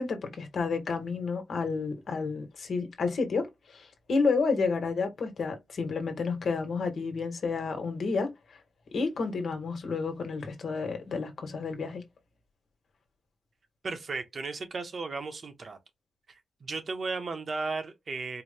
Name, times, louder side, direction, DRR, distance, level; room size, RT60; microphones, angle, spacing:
voice 1, 0.0-8.3 8.9-12.0, left 4 dB, 80° left, 1.2 m, -30 dB
voice 2, 13.8-15.8 16.6-18.4, right 4 dB, 55° right, 0.9 m, -35 dB
4.5 x 2.2 x 3.3 m
wide cardioid pair, 140°, 0 cm